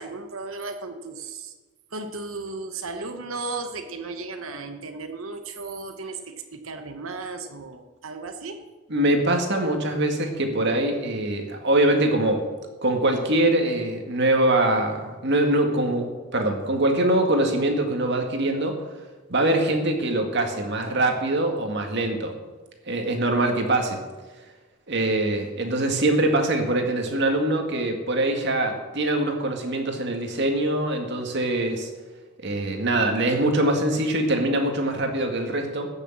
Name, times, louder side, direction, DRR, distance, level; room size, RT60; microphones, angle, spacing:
voice 1, 0.0-1.5 1.9-8.6, right 3 dB, 80° right, 6 dB, 1.1 m, -35 dB
voice 2, 8.9-12.4 12.8-18.8 19.3-22.3 22.9-24.0 24.9-31.9 32.4-35.9, right 1 dB, 55° right, 4 dB, 2.1 m, -23 dB
15.5 x 6.8 x 7.3 m, 1.3 s
head